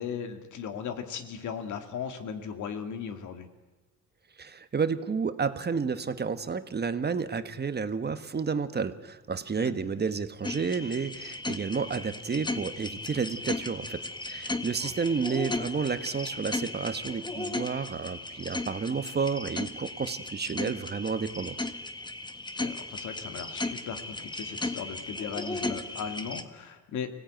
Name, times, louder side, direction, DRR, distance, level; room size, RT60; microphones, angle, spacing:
voice 1, 0.0-3.5 9.6-9.7 14.6-14.9 22.5-27.1, left 7 dB, 75° left, 8 dB, 2.3 m, -37 dB
voice 2, 4.4-21.5, right 5 dB, 35° right, 11 dB, 1.3 m, -31 dB
sound 1, 10.4-26.4, left 2 dB, 15° left, 1.6 m, -36 dB
24.0 x 17.0 x 9.1 m, 1.2 s
cardioid pair, 90°, 30 cm